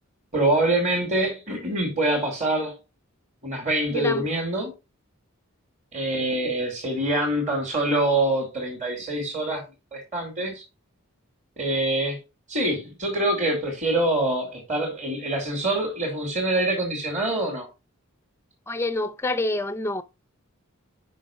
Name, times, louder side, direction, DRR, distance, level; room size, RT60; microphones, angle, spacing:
voice 1, 0.3-2.8 3.4-4.7 5.9-9.6 9.9-10.6 11.6-12.2 12.5-17.7, right 1 dB, 30° right, 2.2 m, -25 dB
voice 2, 3.9-4.3 18.7-20.0, left 2 dB, 10° left, 0.5 m, -27 dB
6.1 x 5.5 x 5.0 m
head